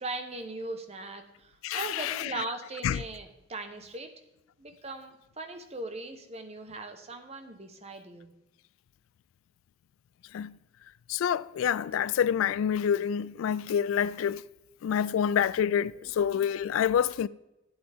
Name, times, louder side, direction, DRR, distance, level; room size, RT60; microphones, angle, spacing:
voice 1, 0.0-4.1 4.6-8.3, right 2 dB, 30° right, 1.0 m, -39 dB
voice 2, 1.6-2.4 2.8-3.0 10.3-10.6 11.1-14.4 14.8-17.3, left 8 dB, 90° left, 0.3 m, -27 dB
11.5 x 9.0 x 3.5 m
head